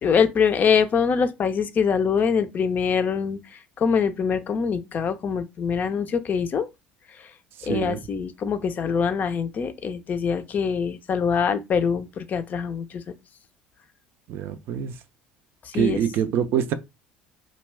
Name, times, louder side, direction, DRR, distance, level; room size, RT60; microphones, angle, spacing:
voice 1, 0.0-3.4 3.8-6.7 7.6-13.0 15.7-16.0, left 6 dB, 40° left, 0.4 m, -24 dB
voice 2, 7.6-8.0 14.3-15.0 15.7-16.7, right 9 dB, 60° right, 0.4 m, -25 dB
2.3 x 2.2 x 3.2 m
hypercardioid pair, 75°, 4 cm